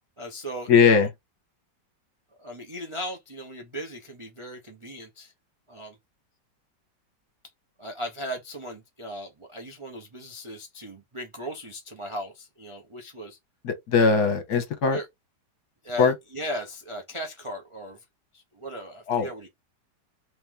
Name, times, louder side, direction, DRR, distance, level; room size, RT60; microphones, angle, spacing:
voice 1, 0.2-1.1 2.4-5.3 5.7-6.0 7.8-13.4 14.9-15.1 15.8-18.0 18.3-19.5, equal, 40° right, 0.4 m, -37 dB
voice 2, 0.7-1.1 13.6-15.0 16.0-16.1 19.1-19.3, left 5 dB, 65° left, 1.5 m, -20 dB
3.3 x 3.1 x 3.5 m
omnidirectional pair, 1.9 m